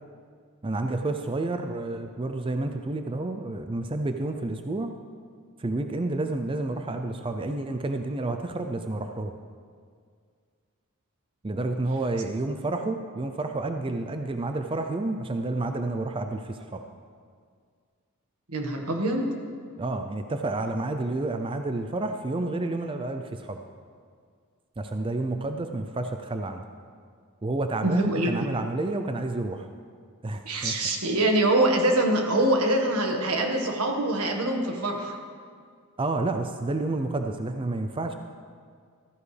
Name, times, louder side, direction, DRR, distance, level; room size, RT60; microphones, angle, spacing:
voice 1, 0.6-4.9 5.6-9.4 11.4-16.8 19.8-23.6 24.8-26.6 27.4-29.7 30.2-30.7 36.0-38.2, right 2 dB, 25° right, 6 dB, 0.4 m, -30 dB
voice 2, 18.5-19.2 27.8-28.5 30.4-35.2, right 1 dB, 85° right, 2 dB, 1.6 m, -24 dB
14.5 x 14.0 x 3.4 m, 2.1 s
head